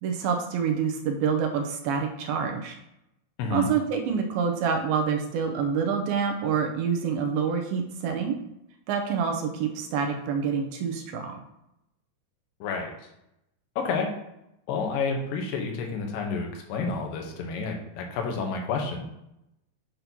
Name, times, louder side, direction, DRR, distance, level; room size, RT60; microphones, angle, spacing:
voice 1, 0.0-2.8 3.5-8.4 8.9-11.4, right 6 dB, 85° right, 3 dB, 2.6 m, -27 dB
voice 2, 12.6-12.9 13.8-14.1 14.7-19.1, left 4 dB, 75° left, 2 dB, 2.6 m, -30 dB
8.4 x 2.9 x 5.3 m, 0.85 s
omnidirectional pair, 4.1 m